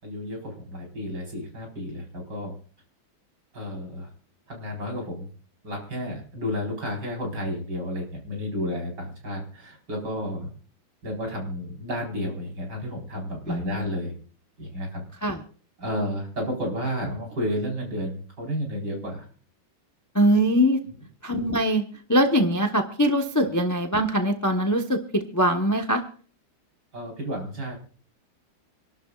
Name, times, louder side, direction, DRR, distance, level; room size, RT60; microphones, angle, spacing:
voice 1, 0.0-2.6 3.5-4.1 4.5-5.3 5.6-10.5 11.0-14.1 14.6-15.0 15.8-19.3 26.9-27.8, equal, 55° right, 0 dB, 5.1 m, -31 dB
voice 2, 13.5-13.9 15.2-15.4 20.1-20.8 21.2-26.0, equal, 15° left, 4 dB, 0.6 m, -22 dB
27.0 x 12.0 x 2.4 m, 0.42 s
omnidirectional pair, 2.2 m